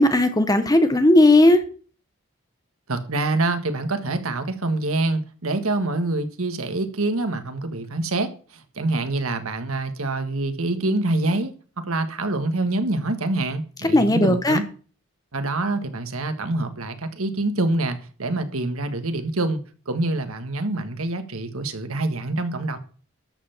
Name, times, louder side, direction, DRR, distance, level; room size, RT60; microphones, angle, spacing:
voice 1, 0.0-1.6 13.9-14.6, left 1 dB, 15° left, 1.0 m, -16 dB
voice 2, 2.9-14.6 15.3-19.6 19.9-22.8, right 2 dB, 80° right, 1.6 m, -26 dB
13.0 x 5.6 x 7.2 m
head